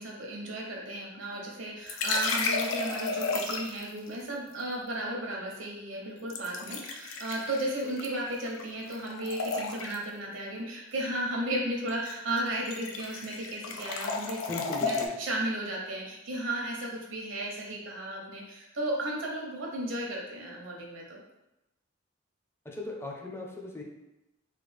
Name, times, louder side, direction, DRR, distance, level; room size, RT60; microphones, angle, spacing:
voice 1, 0.0-21.2, right 1 dB, 70° right, -2 dB, 0.8 m, -34 dB
sound 1, 1.9-3.9 6.3-8.7 8.9-10.1 11.9-12.1 12.4-15.1, left 4 dB, 70° left, 0.4 m, -33 dB
voice 2, 14.5-15.2 22.6-23.8, left 2 dB, 10° left, -1 dB, 0.4 m, -38 dB
3.2 x 2.2 x 3.3 m, 0.94 s
head